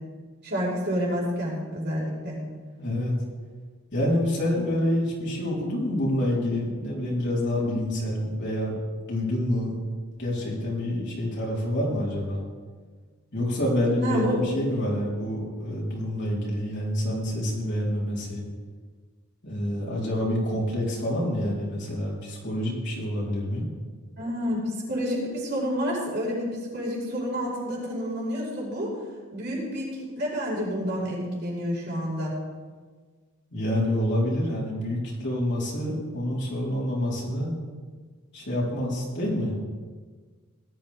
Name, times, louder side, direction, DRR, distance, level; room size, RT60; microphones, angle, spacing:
voice 1, 0.4-2.4 14.0-14.4 24.2-28.9 29.3-32.3, equal, 50° right, -4 dB, 5.2 m, -29 dB
voice 2, 2.8-3.1 3.9-8.7 9.0-9.8 10.2-12.4 13.3-18.4 19.4-23.6 33.5-37.5 38.3-39.6, left 1 dB, 50° left, -5 dB, 4.4 m, -27 dB
18.5 x 12.5 x 3.6 m, 1.5 s
head